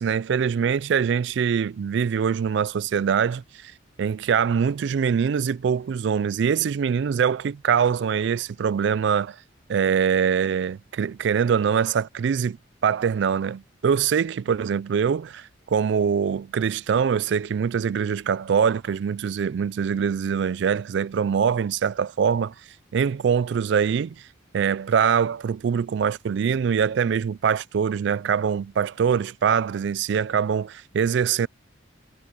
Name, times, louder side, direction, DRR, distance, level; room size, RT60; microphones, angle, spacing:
voice 1, 0.0-3.7 4.0-9.4 9.7-12.6 12.8-22.5 22.9-24.1 24.5-31.5, right 7 dB, 60° right, 0.3 m, -23 dB
head